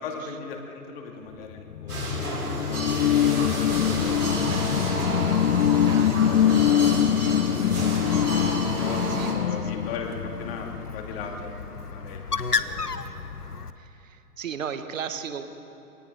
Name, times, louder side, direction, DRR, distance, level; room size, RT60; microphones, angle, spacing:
voice 1, 0.0-3.1 3.4-4.5 5.7-6.5 7.6-8.2 8.8-13.0, left 5 dB, 40° left, 2 dB, 2.6 m, -39 dB
sound 1, 1.6-10.8, left 10 dB, 60° left, 0.5 m, -24 dB
sound 2, 1.9-9.3, right 2 dB, 80° right, 6.1 m, -30 dB
voice 2, 5.9-6.3 9.1-9.3 9.6-9.7 13.8-15.5, right 7 dB, 60° right, 10 dB, 1.5 m, -35 dB
Bird, 7.6-13.7, left 5 dB, 90° left, 0.9 m, -34 dB
25.0 x 18.5 x 5.6 m, 2.9 s
figure-of-eight pair, 110°, 45 cm